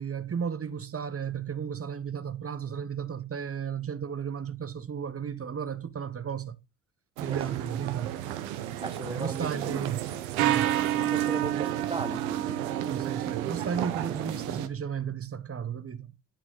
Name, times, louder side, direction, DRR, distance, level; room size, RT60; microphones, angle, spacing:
voice 1, 0.0-6.6 7.2-8.2 9.1-10.8 12.8-16.1, right 7 dB, 35° right, 1.1 m, -34 dB
sound 1, 7.2-14.7, right 12 dB, 90° right, 1.0 m, -30 dB
voice 2, 7.3-7.6 8.8-9.5 10.1-10.2 10.9-12.6 13.5-13.7, right 2 dB, 15° right, 1.5 m, -38 dB
11.5 x 4.8 x 3.8 m
hypercardioid pair, 55°, 41 cm